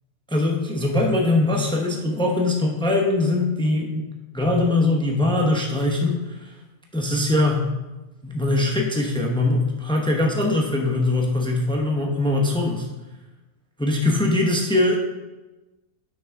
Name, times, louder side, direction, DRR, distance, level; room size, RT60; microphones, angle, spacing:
voice 1, 0.3-4.0 4.3-6.5 6.9-7.7 8.2-12.9 13.8-15.0, left 2 dB, 5° left, 1 dB, 0.6 m, -22 dB
6.1 x 6.1 x 4.6 m, 1.1 s
omnidirectional pair, 1.6 m